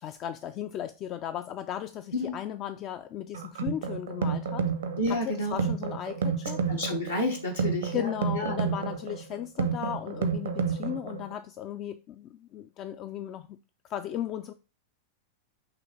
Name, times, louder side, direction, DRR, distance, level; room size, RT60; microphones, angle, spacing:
voice 1, 0.0-4.7 5.1-6.6 7.9-13.6 13.9-14.5, left 11 dB, 35° left, 0.3 m, -36 dB
sound 1, 3.3-11.3, right 6 dB, 65° right, 0.7 m, -31 dB
voice 2, 5.0-5.7 6.7-8.5 9.8-9.9, left 1 dB, 75° left, 1.1 m, -30 dB
5.8 x 3.1 x 5.2 m
figure-of-eight pair, 90°, 0 cm